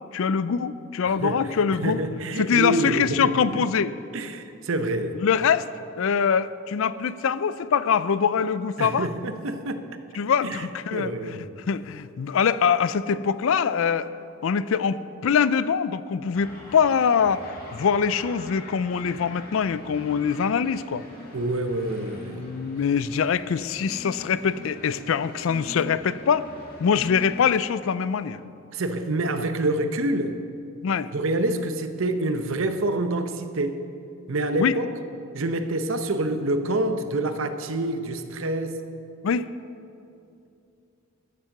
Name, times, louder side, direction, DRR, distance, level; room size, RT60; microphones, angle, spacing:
voice 1, 0.1-2.1 2.4-3.9 5.2-5.7 6.0-9.1 10.1-11.4 11.7-14.1 14.4-21.0 22.3-26.5 26.8-28.4 30.8-31.1 34.6-34.8 39.2-39.5, left 6 dB, 65° left, 16 dB, 0.4 m, -23 dB
voice 2, 1.8-3.6 4.1-5.2 8.8-9.8 10.4-10.7 10.9-11.5 21.3-22.4 28.7-30.4 31.1-33.8 34.3-34.9 35.3-38.8, right 2 dB, 65° right, 9 dB, 0.8 m, -27 dB
sound 1, 16.3-27.5, left 2 dB, 40° left, 2.2 m, -43 dB
13.0 x 7.4 x 6.6 m, 2.6 s
head